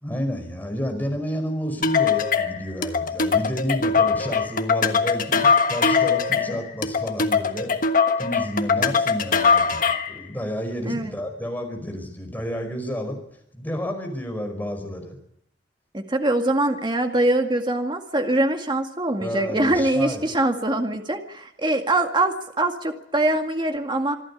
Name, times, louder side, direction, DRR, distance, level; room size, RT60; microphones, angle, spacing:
voice 1, 0.0-7.7 8.2-9.8 10.1-13.2 13.5-15.2 19.2-20.2, equal, 10° left, 4 dB, 5.1 m, -30 dB
sound 1, 1.8-10.2, left 5 dB, 50° left, 1.4 m, -21 dB
voice 2, 15.9-24.2, right 1 dB, 25° right, 5 dB, 2.1 m, -23 dB
26.0 x 12.0 x 9.9 m, 0.81 s
head